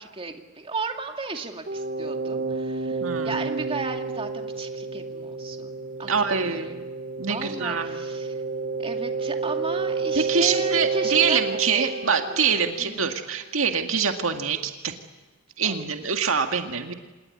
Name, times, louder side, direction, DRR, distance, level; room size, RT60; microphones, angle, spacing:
voice 1, 0.0-6.8 7.2-8.4 8.8-11.4 11.7-13.2 15.6-15.7 16.0-16.1, right 3 dB, 25° right, 4 dB, 2.4 m, -35 dB
sound 1, 1.7-13.3, right 4 dB, 50° right, 1.1 m, -30 dB
voice 2, 3.0-3.4 6.1-6.9 7.2-8.0 10.2-14.9 15.6-16.9, right 6 dB, 75° right, 5 dB, 2.0 m, -25 dB
27.0 x 20.5 x 9.7 m, 1.1 s
head